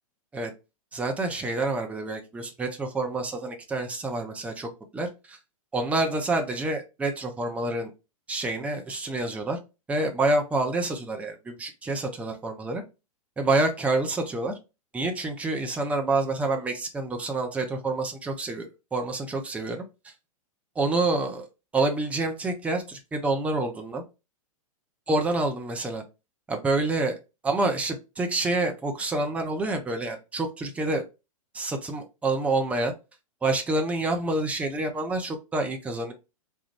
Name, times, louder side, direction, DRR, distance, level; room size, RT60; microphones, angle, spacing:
voice 1, 0.9-5.4 5.7-7.9 8.3-9.6 9.9-12.8 13.4-14.5 14.9-20.1 20.8-21.5 21.7-24.0 25.1-26.0 26.5-27.2 27.4-31.0 31.5-32.9 33.4-36.1, right 2 dB, 5° right, 3 dB, 0.5 m, -27 dB
2.4 x 2.2 x 3.0 m, 0.27 s
figure-of-eight pair, 105°, 18 cm